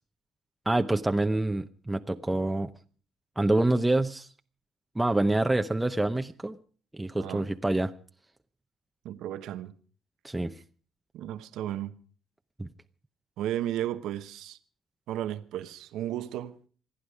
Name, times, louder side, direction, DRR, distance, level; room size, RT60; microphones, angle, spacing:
voice 1, 0.7-2.7 3.4-4.3 5.0-6.6 6.9-7.9 10.2-10.5 12.6-12.7, right 2 dB, 10° right, 0.8 m, -26 dB
voice 2, 7.1-7.5 9.0-9.7 11.1-11.9 13.4-14.6 15.1-16.6, right 12 dB, 85° right, 0.9 m, -34 dB
27.0 x 10.0 x 4.9 m
cardioid pair, 90°, 0 cm